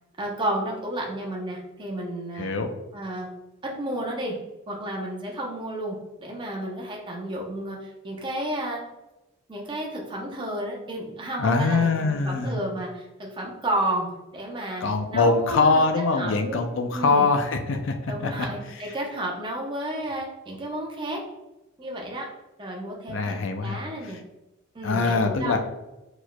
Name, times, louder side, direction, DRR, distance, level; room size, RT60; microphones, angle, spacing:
voice 1, 0.2-2.5 2.9-3.3 3.6-4.3 4.7-8.8 9.5-14.1 14.3-14.8 15.1-15.8 16.2-16.6 16.9-17.3 18.1-21.2 21.8-22.3 22.6-23.3 23.6-24.2 24.7-25.6, right 1 dB, 25° right, -1 dB, 0.7 m, -31 dB
voice 2, 2.4-2.7 11.4-12.5 14.8-17.9 18.2-18.3 23.1-24.1 24.8-25.6, left 3 dB, 60° left, 5 dB, 0.5 m, -23 dB
4.3 x 4.3 x 2.2 m, 1.0 s
head